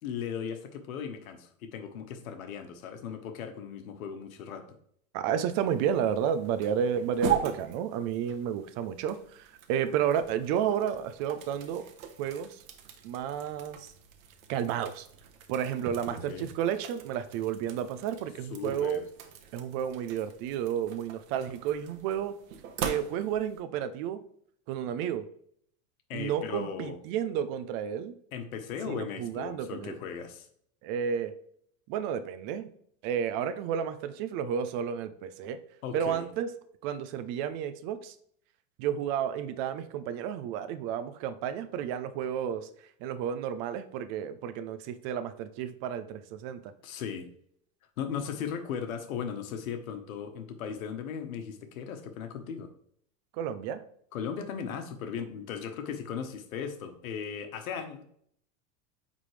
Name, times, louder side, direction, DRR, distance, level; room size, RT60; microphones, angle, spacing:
voice 1, 0.0-4.8 16.1-16.5 18.5-19.1 26.1-27.0 28.3-30.5 35.8-36.2 46.8-47.3 48.0-52.7 54.1-58.0, left 7 dB, 85° left, 7 dB, 1.2 m, -37 dB
voice 2, 5.1-11.9 12.2-12.6 13.0-13.9 14.5-15.1 15.5-19.0 19.5-22.4 22.8-24.2 24.7-25.3 26.1-28.1 28.9-30.0 30.8-31.3 31.9-32.7 33.0-35.6 35.9-36.5 36.8-38.1 38.8-42.7 43.0-46.7 53.3-53.8, right 8 dB, 45° right, 12 dB, 0.6 m, -31 dB
sound 1, 5.6-23.6, right 8 dB, 75° right, 1.2 m, -40 dB
8.7 x 3.7 x 3.3 m, 0.65 s
supercardioid pair, 135°, 41 cm